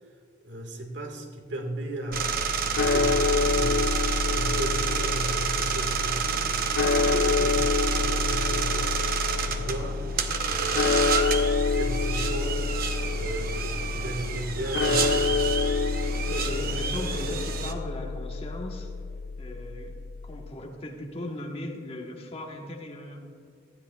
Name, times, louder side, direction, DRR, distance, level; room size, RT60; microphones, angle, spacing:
voice 1, 0.4-2.4 2.7-3.9 4.3-6.4 6.9-8.9 9.4-10.0 10.4-11.3 11.7-12.6 13.1-15.4, right 1 dB, 80° right, 2 dB, 1.7 m, -35 dB
sound 1, 2.1-20.5, left 4 dB, 60° left, 0.3 m, -28 dB
sound 2, 2.1-17.7, right 7 dB, 50° right, 0.8 m, -29 dB
voice 2, 16.0-18.9 19.4-20.0 20.2-23.3, left 1 dB, 30° left, 1 dB, 1.3 m, -38 dB
18.5 x 12.5 x 2.3 m, 2.3 s
head